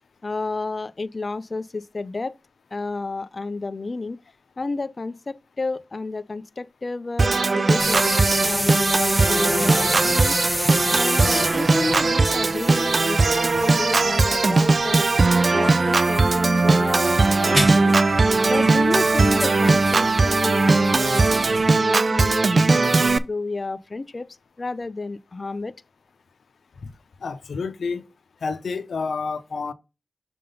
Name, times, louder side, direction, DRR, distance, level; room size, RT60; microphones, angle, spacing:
voice 1, 0.2-2.3 2.7-4.2 4.6-10.4 10.9-15.1 15.5-17.9 18.4-21.3 21.7-25.7, left 3 dB, 45° left, 0.4 m, -31 dB
Organ, 7.2-23.2, right 3 dB, 55° right, 0.5 m, -19 dB
sound 1, 7.8-21.7, equal, 5° right, 1.7 m, -30 dB
sound 2, 9.0-10.7 12.5-14.2 15.9-17.6 19.4-21.1 22.8-23.1, right 1 dB, 25° right, 3.8 m, -42 dB
voice 2, 27.2-28.0 28.4-29.7, left 4 dB, 90° left, 0.7 m, -29 dB
6.7 x 3.6 x 5.4 m
wide cardioid pair, 65°, 0 cm